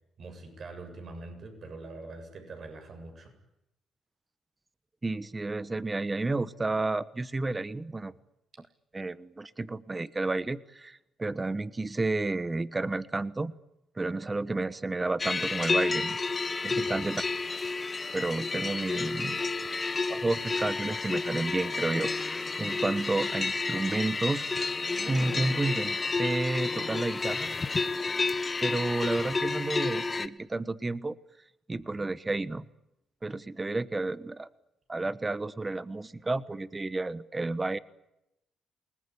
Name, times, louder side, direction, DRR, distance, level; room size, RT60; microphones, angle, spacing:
voice 1, 0.2-3.3 16.7-17.2, right 3 dB, 50° right, 6 dB, 7.7 m, -44 dB
voice 2, 5.0-8.1 8.6-8.7 8.9-13.5 14.0-16.2 16.6-17.2 18.1-19.4 20.1-24.7 25.1-27.5 28.6-31.1 31.7-32.6 33.2-34.5 34.9-37.8, right 2 dB, 20° right, 15 dB, 1.1 m, -31 dB
sound 1, 15.2-30.3, left 3 dB, 30° left, 1.3 m, -31 dB
28.0 x 20.0 x 9.9 m, 0.87 s
cardioid pair, 90°, 0 cm